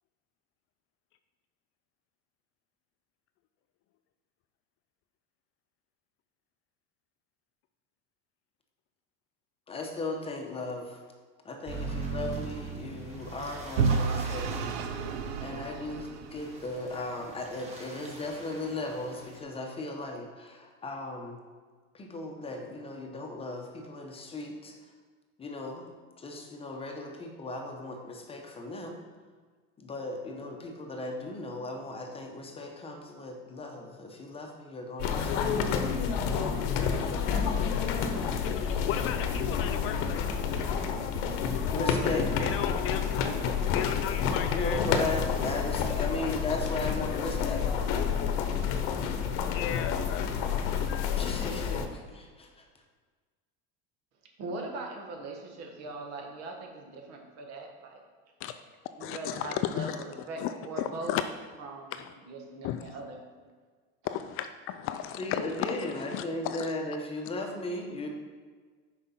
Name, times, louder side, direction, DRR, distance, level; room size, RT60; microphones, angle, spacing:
voice 1, 9.7-11.0 11.4-14.8 15.4-21.4 21.9-24.7 25.4-25.9 26.2-29.0 29.8-35.5 41.7-42.3 44.5-47.7 51.2-52.5 65.2-68.1, left 2 dB, 20° left, 2 dB, 0.9 m, -36 dB
sound 1, 11.6-19.4, right 4 dB, 20° right, 1.4 m, -41 dB
Vehicle / Engine, 13.8-16.8, right 5 dB, 85° right, 0.7 m, -30 dB
sound 2, 35.0-51.9, left 7 dB, 70° left, 0.9 m, -29 dB
voice 2, 38.4-40.3 42.4-43.3 43.7-44.8 46.1-46.2 49.5-50.3 50.9-51.1 58.4-58.6 59.0-60.0 60.4-61.2 61.9-62.1 62.6-63.0 64.0-66.7, left 11 dB, 45° left, 9 dB, 0.4 m, -35 dB
voice 3, 54.4-58.0 59.0-61.2 61.6-63.2, right 2 dB, 55° right, 2 dB, 1.5 m, -40 dB
6.5 x 5.0 x 5.6 m, 1.5 s
supercardioid pair, 140°, 31 cm